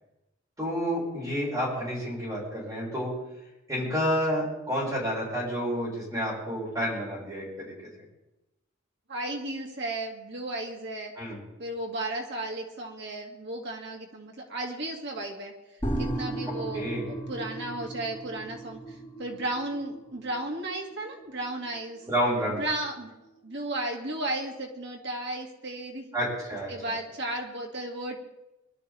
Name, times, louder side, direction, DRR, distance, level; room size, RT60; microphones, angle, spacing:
voice 1, 0.6-3.1 3.7-7.7 11.2-11.4 16.7-17.1 22.0-22.6 26.1-26.9, equal, 15° right, -5 dB, 6.0 m, -29 dB
voice 2, 9.1-11.1 11.6-15.5 16.0-22.0 22.6-23.2 23.4-26.1 26.7-28.2, right 1 dB, 60° right, 1 dB, 2.3 m, -34 dB
sound 1, 15.8-23.0 23.3-23.4, right 1 dB, 10° left, 5.0 m, -36 dB
23.0 x 12.5 x 3.6 m, 0.97 s
head